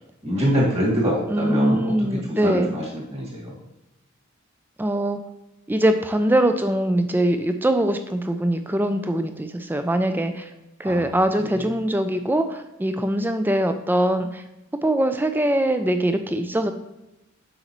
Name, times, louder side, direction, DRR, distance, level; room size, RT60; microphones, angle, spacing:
voice 1, 0.2-3.6 10.8-11.6, equal, 30° right, -3 dB, 1.9 m, -25 dB
voice 2, 1.3-2.7 4.8-5.2 5.7-10.5 10.8-14.4 14.8-16.7, right 1 dB, 10° right, 8 dB, 0.4 m, -22 dB
7.8 x 5.3 x 3.0 m, 0.94 s
head